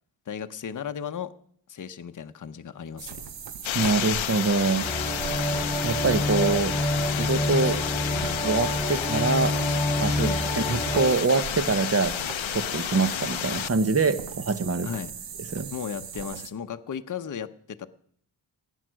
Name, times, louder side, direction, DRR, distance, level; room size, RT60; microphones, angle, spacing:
voice 1, 0.3-1.3 1.7-3.2 10.2-10.4 14.8-15.1 15.7-17.5 17.8-17.9, left 7 dB, 40° left, 8 dB, 0.7 m, -35 dB
sound 1, 3.0-16.5, right 7 dB, 65° right, 1.0 m, -39 dB
sound 2, 3.6-13.7, left 13 dB, 85° left, 0.6 m, -31 dB
voice 2, 3.7-4.9 5.8-6.7 7.1-7.8 8.4-9.6 10.0-12.1 12.5-14.9 15.5-15.7, right 4 dB, 30° right, 12 dB, 0.9 m, -24 dB
sound 3, 4.8-11.1, left 1 dB, ahead, 2.7 m, -27 dB
17.0 x 9.3 x 6.3 m, 0.63 s
wide cardioid pair, 135°, 46 cm